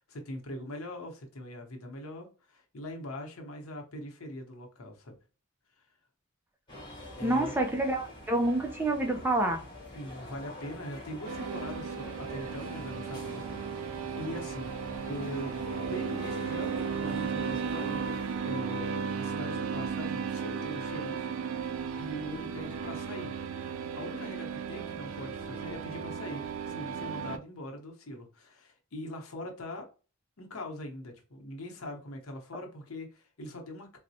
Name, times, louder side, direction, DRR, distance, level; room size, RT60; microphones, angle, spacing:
voice 1, 0.0-5.1 7.2-7.5 9.9-14.7 15.1-15.5 15.9-18.2 18.4-21.3 22.0-23.4 24.0-29.9 30.4-34.0, left 1 dB, 85° left, 0.9 m, -42 dB
sound 1, 6.7-18.3, left 1 dB, 20° left, 1.0 m, -46 dB
voice 2, 7.2-9.6, right 2 dB, 10° right, 0.4 m, -28 dB
sound 2, 11.2-27.4, right 6 dB, 70° right, 0.4 m, -35 dB
4.0 x 2.1 x 2.7 m
head